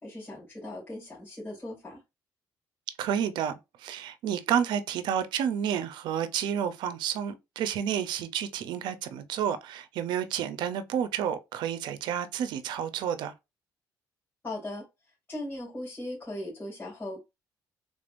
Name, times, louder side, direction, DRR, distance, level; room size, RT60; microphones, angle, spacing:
voice 1, 0.0-2.0 14.4-14.9 15.3-17.2, left 1 dB, 25° left, 2.3 m, -38 dB
voice 2, 3.0-13.3, right 9 dB, 80° right, 0.6 m, -30 dB
3.6 x 3.4 x 2.6 m
cardioid pair, 95°, 8 cm